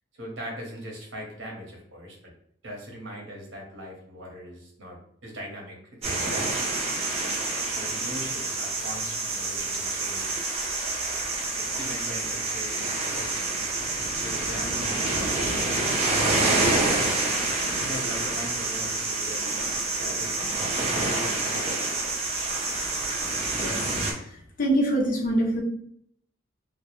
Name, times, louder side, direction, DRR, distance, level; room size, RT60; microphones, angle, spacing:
voice 1, 0.1-2.3 2.6-6.6 7.7-10.5 11.8-13.5 14.1-15.7 17.8-21.7, equal, 80° right, -1 dB, 0.8 m, -40 dB
sound 1, 6.0-24.1, right 2 dB, 35° right, 0.4 m, -27 dB
voice 2, 24.6-25.6, right 1 dB, 45° left, -1 dB, 0.5 m, -24 dB
2.2 x 2.0 x 2.9 m, 0.67 s
head